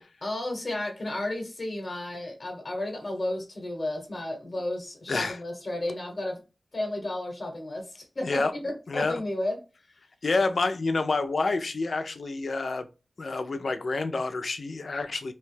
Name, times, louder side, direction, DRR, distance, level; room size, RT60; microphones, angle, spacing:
voice 1, 0.2-6.4 6.7-9.6, left 1 dB, 45° left, 0.9 m, -33 dB
voice 2, 8.2-8.5 8.9-9.1 10.2-12.9 13.2-15.3, left 3 dB, 80° left, 0.3 m, -28 dB
2.7 x 2.2 x 3.1 m
wide cardioid pair, 80°, 0 cm